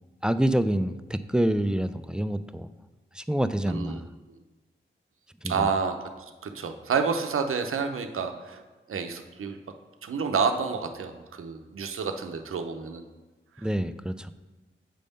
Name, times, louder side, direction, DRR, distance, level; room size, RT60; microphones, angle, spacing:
voice 1, 0.2-2.7 3.1-4.1 5.4-5.7 13.6-14.3, right 1 dB, 5° right, 11 dB, 0.3 m, -27 dB
voice 2, 3.6-4.0 5.4-6.1 6.4-8.6 8.9-9.6 10.0-13.0 13.6-13.7, right 5 dB, 85° right, 6 dB, 0.6 m, -29 dB
7.6 x 3.5 x 5.3 m, 1.2 s
cardioid pair, 50°, 21 cm